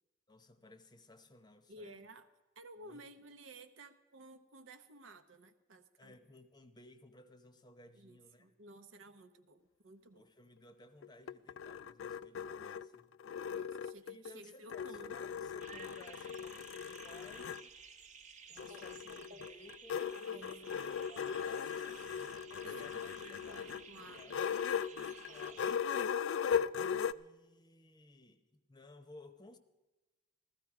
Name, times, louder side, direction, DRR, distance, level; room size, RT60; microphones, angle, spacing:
voice 1, 0.3-2.0 2.8-3.0 6.0-8.5 10.1-13.2 14.1-18.1 18.5-22.3 22.6-24.4 24.9-25.8 27.1-29.6, left 1 dB, 20° left, 0.8 m, -59 dB
voice 2, 1.7-2.3 2.6-6.2 7.9-10.3 13.5-15.2 20.3-20.5 22.6-24.4, right 2 dB, 80° right, 0.9 m, -55 dB
sound 1, 11.0-14.3 14.7-17.6 18.6-27.1, left 7 dB, 75° left, 0.3 m, -38 dB
sound 2, 15.6-25.7, right 5 dB, 40° right, 1.0 m, -55 dB
14.5 x 14.0 x 4.9 m
head